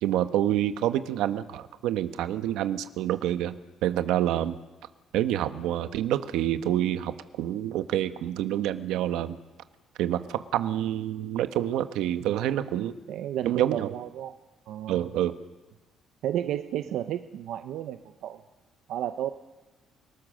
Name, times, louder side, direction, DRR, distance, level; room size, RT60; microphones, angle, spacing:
voice 1, 0.0-3.5 3.8-4.6 5.1-9.4 10.0-12.9 13.4-13.9 14.9-15.3, right 12 dB, 90° right, 10 dB, 1.3 m, -27 dB
voice 2, 12.2-14.3 14.7-15.1 16.2-18.4 18.9-19.3, right 11 dB, 70° right, 8 dB, 0.9 m, -33 dB
30.0 x 19.5 x 6.6 m, 1.1 s
cardioid pair, 155°, 0 cm